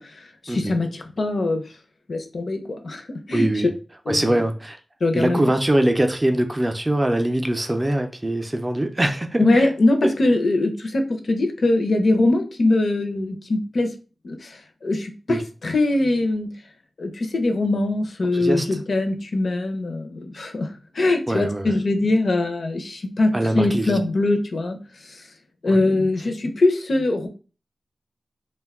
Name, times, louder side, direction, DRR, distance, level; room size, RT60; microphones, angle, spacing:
voice 1, 0.0-1.6 2.1-3.5 4.1-4.3 5.0-5.4 9.4-13.9 14.2-16.5 17.0-24.8 25.0-25.2 25.6-27.3, left 2 dB, 65° left, 0.6 m, -22 dB
voice 2, 3.3-3.7 4.1-4.8 5.1-9.7 10.0-10.2 15.3-15.4 18.3-18.7 21.3-21.7 23.3-24.0 25.7-25.8, right 1 dB, 20° right, 0.4 m, -22 dB
2.5 x 2.2 x 3.5 m
wide cardioid pair, 110°, 0 cm